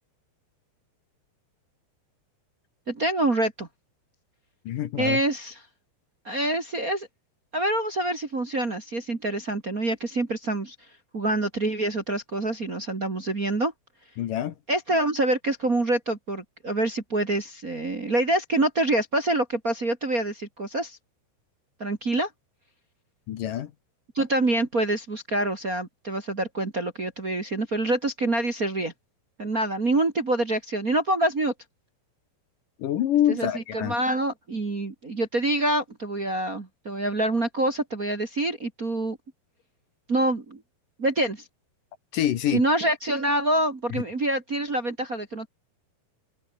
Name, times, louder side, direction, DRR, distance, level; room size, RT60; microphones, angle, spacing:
voice 1, 2.9-3.7 5.0-5.5 6.2-7.1 7.5-10.7 11.1-13.7 14.7-21.0 21.8-22.3 24.1-28.9 29.4-31.5 33.4-39.2 40.1-40.6 41.0-41.4 42.5-45.5, right 1 dB, 30° right, 2.0 m, -26 dB
voice 2, 4.7-5.2 14.2-14.6 23.3-23.7 32.8-34.0 42.1-42.6 43.9-44.0, left 11 dB, 65° left, 2.7 m, -26 dB
omnidirectional pair, 4.5 m